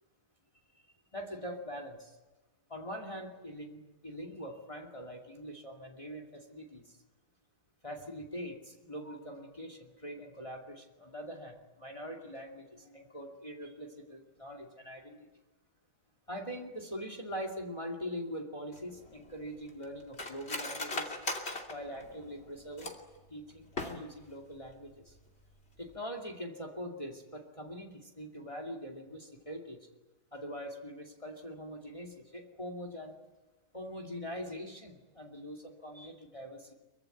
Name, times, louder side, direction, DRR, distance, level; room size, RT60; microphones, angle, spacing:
voice 1, 1.1-2.2 2.7-7.0 7.8-15.3 16.3-21.2 21.7-22.9 23.3-25.2 25.8-29.8 30.3-33.1 33.7-36.7, equal, 20° left, 1 dB, 2.5 m, -43 dB
Cutlery silverware, 18.7-23.2 23.6-24.3 24.7-24.8 25.1-25.4 25.8-26.0, left 2 dB, 40° left, 3.0 m, -39 dB
24.5 x 23.5 x 9.2 m, 1.1 s
omnidirectional pair, 1.6 m